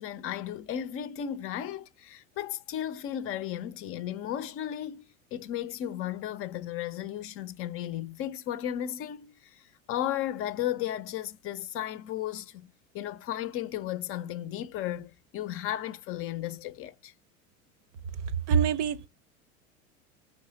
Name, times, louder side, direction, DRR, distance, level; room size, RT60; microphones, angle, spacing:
voice 1, 0.0-12.7 12.9-17.1, left 11 dB, 30° left, 0.6 m, -35 dB
voice 2, 18.5-19.1, right 7 dB, 55° right, 0.7 m, -24 dB
5.5 x 3.2 x 5.3 m
figure-of-eight pair, 85°, 43 cm